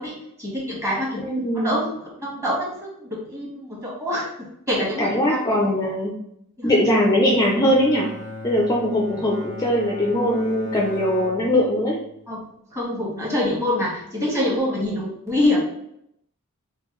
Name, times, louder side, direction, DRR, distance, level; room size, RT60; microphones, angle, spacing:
voice 1, 0.0-1.2 1.5-1.9 2.2-4.3 4.7-5.4 6.6-6.7 12.3-12.4 12.7-15.6, left 1 dB, 15° right, -5 dB, 1.4 m, -25 dB
voice 2, 1.2-1.8 5.0-6.1 6.6-8.1 8.4-12.0, left 1 dB, 15° left, -2 dB, 0.5 m, -21 dB
Bowed string instrument, 7.1-12.4, left 1 dB, 55° right, 1.4 m, -38 dB
4.5 x 2.4 x 3.1 m, 0.74 s
head